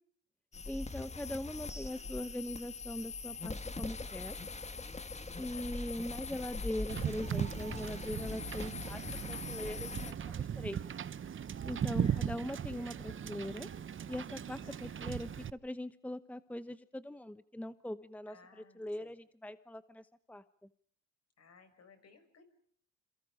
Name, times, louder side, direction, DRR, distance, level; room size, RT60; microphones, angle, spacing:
sound 1, 0.5-10.1, left 3 dB, 20° left, 1.9 m, -42 dB
voice 1, 0.7-4.4 5.4-10.8 11.6-13.7 14.1-20.4, left 1 dB, 5° left, 13 dB, 1.0 m, -41 dB
voice 2, 5.5-5.9 12.0-12.3 14.6-15.1 18.3-19.1 21.4-22.5, left 5 dB, 55° left, 9 dB, 6.4 m, -60 dB
Wind / Boat Water vehicle, 6.9-15.5, right 8 dB, 40° right, 0.9 m, -38 dB
28.0 x 27.5 x 5.1 m, 0.63 s
cardioid pair, 90°, 30 cm